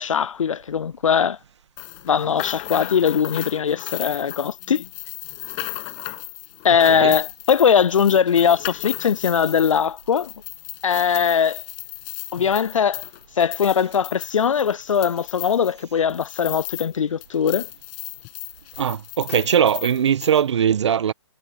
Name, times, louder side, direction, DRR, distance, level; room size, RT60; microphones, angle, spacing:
voice 1, 0.0-1.4 2.0-4.9 6.6-10.3 10.8-11.6 12.3-13.0 13.4-17.7, left 7 dB, 75° left, 0.5 m, -20 dB
sound 1, 1.8-17.0 17.2-20.4, left 40 dB or more, 30° left, 7.8 m, -35 dB
voice 2, 18.8-21.1, right 8 dB, 60° right, 1.5 m, -20 dB
figure-of-eight pair, 130°, 17 cm